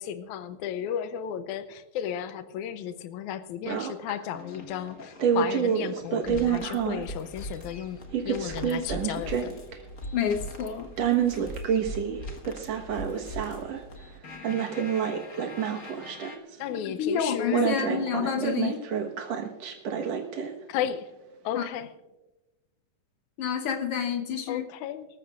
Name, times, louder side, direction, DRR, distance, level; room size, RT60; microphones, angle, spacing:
voice 1, 0.0-9.5 16.6-17.7 20.7-21.1 21.4-21.9 24.5-25.1, left 9 dB, 85° left, 11 dB, 2.1 m, -34 dB
sound 1, 3.7-4.1 5.2-7.1 8.1-9.7 11.0-13.8 14.4-16.5 17.5-20.7, right 8 dB, 65° right, 2.4 m, -28 dB
sound 2, 4.3-16.4, left 1 dB, 40° left, 1.3 m, -42 dB
voice 2, 10.1-10.9 16.8-18.8 21.5-21.7 23.4-24.6, left 7 dB, 60° left, 6 dB, 1.8 m, -29 dB
25.0 x 14.0 x 2.5 m, 1.1 s
omnidirectional pair, 3.4 m